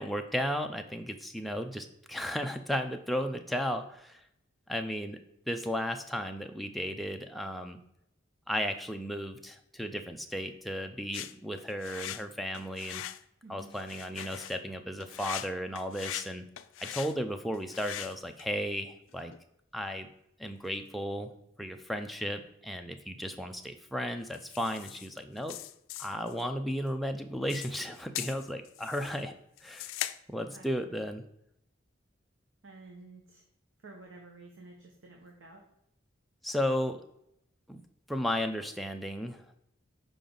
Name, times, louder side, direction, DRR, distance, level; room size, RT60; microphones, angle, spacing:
voice 1, 0.0-4.2 4.7-5.2 5.5-7.8 8.5-13.0 13.5-16.5 16.8-19.3 19.7-20.1 20.4-21.3 21.6-25.6 26.0-29.3 29.6-29.9 30.3-31.2 36.4-37.0 37.7-37.8 38.1-39.6, equal, ahead, 4 dB, 0.4 m, -34 dB
sound 1, 11.1-12.3 12.5-13.2 13.6-14.6 15.0-16.3 16.6-17.1 17.5-18.5 19.1-19.4 24.3-25.1 25.4-26.4 27.5-29.2 29.6-30.2, left 12 dB, 90° left, 0.4 m, -41 dB
voice 2, 13.4-13.7 30.3-30.7 32.6-33.4 33.8-35.6, right 3 dB, 85° right, 1 dB, 1.0 m, -51 dB
6.9 x 5.0 x 3.8 m, 0.78 s
head